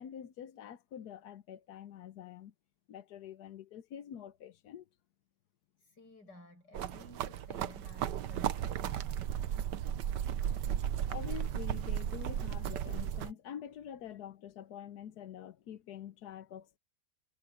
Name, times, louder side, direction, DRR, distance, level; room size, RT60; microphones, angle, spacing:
voice 1, 0.0-2.5 2.9-4.8 11.1-16.8, left 9 dB, 70° left, 1.4 m, -46 dB
voice 2, 5.8-9.4, left 1 dB, 85° left, 8.7 m, -55 dB
sound 1, 6.7-13.3, right 10 dB, 85° right, 1.5 m, -35 dB
omnidirectional pair, 1.8 m